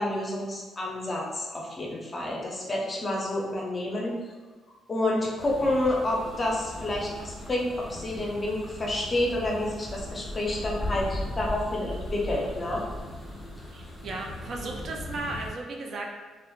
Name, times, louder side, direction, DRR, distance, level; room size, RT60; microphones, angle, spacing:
voice 1, 0.0-4.1 4.9-12.8, left 1 dB, 30° left, -3 dB, 0.6 m, -29 dB
sound 1, 5.4-15.5, left 1 dB, 10° left, 1.0 m, -38 dB
voice 2, 13.7-16.2, right 2 dB, 55° right, 1 dB, 0.4 m, -35 dB
2.9 x 2.0 x 2.3 m, 1.3 s
cardioid pair, 90°, 0 cm